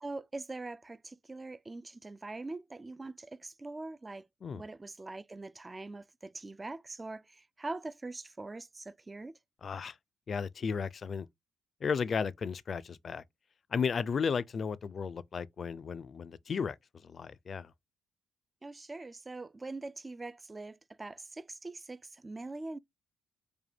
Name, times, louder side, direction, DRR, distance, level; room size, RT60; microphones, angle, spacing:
voice 1, 0.0-4.3 4.5-9.4 18.6-22.8, right 2 dB, 20° right, 0.3 m, -43 dB
voice 2, 9.6-10.0 10.3-11.3 11.8-13.2 13.7-16.8 17.0-17.7, left 6 dB, 45° left, 0.4 m, -34 dB
5.0 x 2.2 x 3.5 m
cardioid pair, 90°, 0 cm